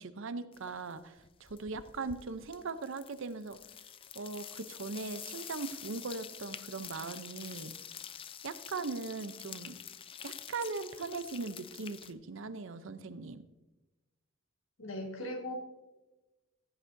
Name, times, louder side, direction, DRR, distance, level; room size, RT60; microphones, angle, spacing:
voice 1, 0.0-3.6 4.1-7.7 8.4-9.8 10.2-13.4, right 4 dB, 70° right, 12 dB, 0.6 m, -40 dB
sound 1, 0.5-0.9 1.2-12.1, left 9 dB, 25° left, 0.4 m, -47 dB
voice 2, 14.8-15.5, left 1 dB, 70° left, 2 dB, 1.8 m, -38 dB
15.0 x 8.9 x 2.7 m, 1.1 s
head